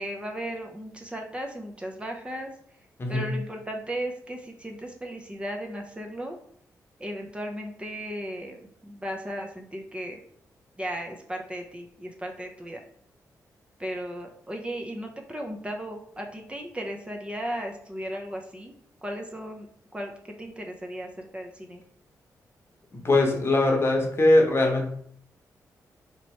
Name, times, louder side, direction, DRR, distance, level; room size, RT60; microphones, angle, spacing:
voice 1, 0.0-2.5 3.1-6.4 7.0-10.2 10.8-12.8 13.8-18.7 19.0-19.7 19.9-20.1 20.4-21.8, equal, 15° right, 1 dB, 0.6 m, -36 dB
voice 2, 22.9-24.9, left 2 dB, 40° left, 1 dB, 0.9 m, -21 dB
2.9 x 2.9 x 4.4 m, 0.65 s
cardioid pair, 75°, 7 cm